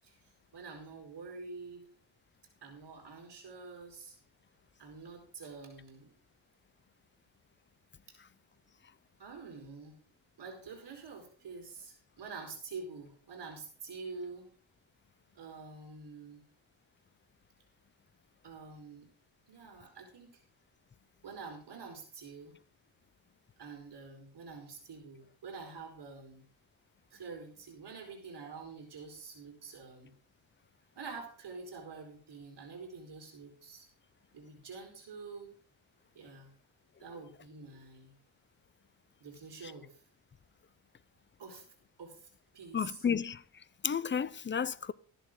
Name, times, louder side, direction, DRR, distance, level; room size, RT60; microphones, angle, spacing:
voice 1, 0.5-1.9 2.6-4.2 4.8-6.1 8.1-8.2 9.2-10.0 10.4-14.5 15.3-16.4 18.4-19.1 19.5-20.4 21.2-22.6 23.6-26.4 27.1-30.1 31.0-33.9 34.3-35.5 36.1-36.5 37.0-38.1 39.2-40.0 41.4-41.6 42.0-42.3 42.5-43.1, right 4 dB, 55° right, 4.7 m, -47 dB
voice 2, 42.7-43.4 43.8-44.9, left 7 dB, 25° left, 0.5 m, -32 dB
14.0 x 11.0 x 3.9 m
cardioid pair, 105°, 49 cm